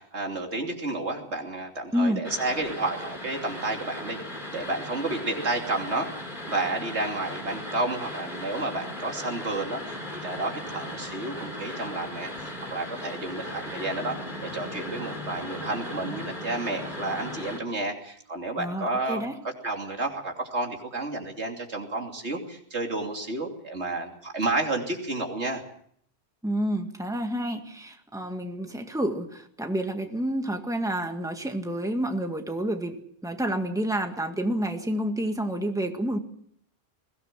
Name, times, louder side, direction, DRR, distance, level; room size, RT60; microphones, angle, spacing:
voice 1, 0.0-4.2 4.5-6.1 6.5-14.2 14.4-25.6, right 2 dB, 85° right, 2 dB, 3.3 m, -31 dB
sound 1, 2.2-17.6, left 1 dB, 45° left, 4.0 m, -37 dB
voice 2, 18.6-19.4 26.4-33.0 33.2-36.2, right 1 dB, 5° right, 4 dB, 1.9 m, -29 dB
21.5 x 17.0 x 7.6 m, 0.67 s
omnidirectional pair, 1.1 m